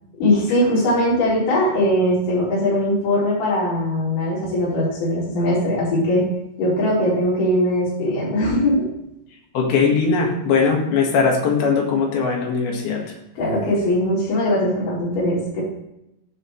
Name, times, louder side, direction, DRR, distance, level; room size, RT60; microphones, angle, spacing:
voice 1, 0.2-6.2 6.6-8.8 13.4-15.6, left 1 dB, 45° left, -7 dB, 5.4 m, -20 dB
voice 2, 9.5-13.1, left 5 dB, 60° left, 0 dB, 3.4 m, -20 dB
13.5 x 6.7 x 3.2 m, 0.86 s
omnidirectional pair, 5.3 m